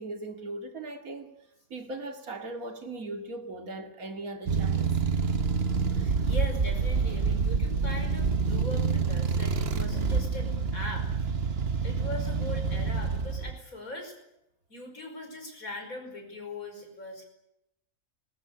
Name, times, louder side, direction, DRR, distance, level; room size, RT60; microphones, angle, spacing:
voice 1, 0.0-1.3 1.7-4.9, right 2 dB, 85° right, 2.9 m, -38 dB
sound 1, 4.5-13.6, right 5 dB, 50° right, 1.3 m, -27 dB
voice 2, 5.9-11.1 11.8-14.1 14.7-17.2, left 2 dB, 80° left, 5.7 m, -40 dB
20.5 x 18.5 x 9.8 m
omnidirectional pair, 1.5 m